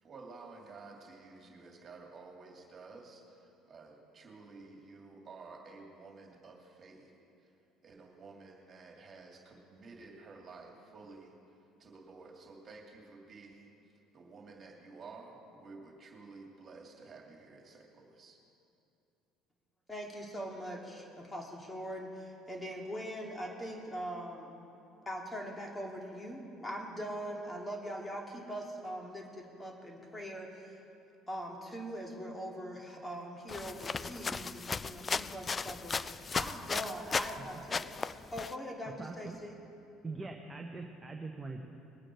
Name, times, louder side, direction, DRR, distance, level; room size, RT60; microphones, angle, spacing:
voice 1, 0.0-7.1 7.4-7.5 7.8-18.4, right 3 dB, 40° right, 1 dB, 2.5 m, -52 dB
voice 2, 19.9-24.5 25.1-30.8 31.3-37.9 38.3-39.5, equal, 15° left, 0 dB, 2.8 m, -42 dB
sound 1, 33.5-37.4 37.7-38.5, left 5 dB, 30° left, 0.4 m, -36 dB
voice 3, 37.3-37.7 38.8-39.5 40.0-41.7, right 3 dB, 20° right, 2 dB, 1.2 m, -43 dB
21.0 x 9.0 x 4.7 m, 2.8 s
hypercardioid pair, 65°, 0 cm